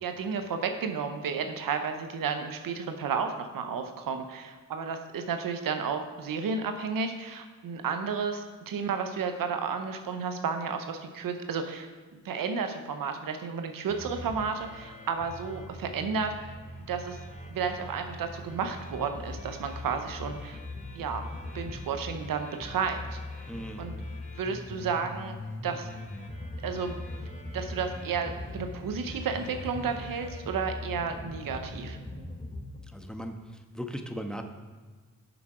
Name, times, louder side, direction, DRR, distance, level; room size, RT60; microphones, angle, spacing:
voice 1, 0.0-11.9 12.2-16.3 16.9-17.2 17.5-20.6 20.9-21.2 21.5-23.2 23.8-23.9 24.4-25.3 25.6-25.9 26.6-27.0 27.5-32.0, right 5 dB, 90° right, 6 dB, 0.7 m, -32 dB
sound 1, 13.9-32.8, left 1 dB, 25° left, 2.6 m, -41 dB
voice 2, 23.5-23.9 32.9-33.4 33.7-34.4, equal, ahead, 4 dB, 1.1 m, -37 dB
7.1 x 7.0 x 4.9 m, 1.4 s
cardioid pair, 40°, 33 cm